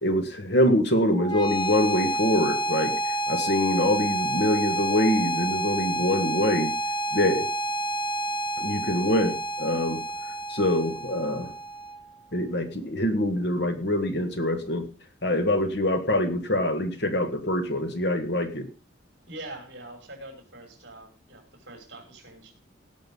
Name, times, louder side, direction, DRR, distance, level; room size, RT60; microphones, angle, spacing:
voice 1, 0.0-6.7 7.1-7.5 8.6-10.0 10.5-11.5 12.3-14.9 15.2-18.7, left 1 dB, 60° left, 6 dB, 1.8 m, -25 dB
sound 1, 1.1-12.1, right 1 dB, 25° left, 0.9 m, -29 dB
voice 2, 19.3-22.5, right 1 dB, 60° right, 3 dB, 5.6 m, -43 dB
17.5 x 6.5 x 5.5 m, 0.36 s
head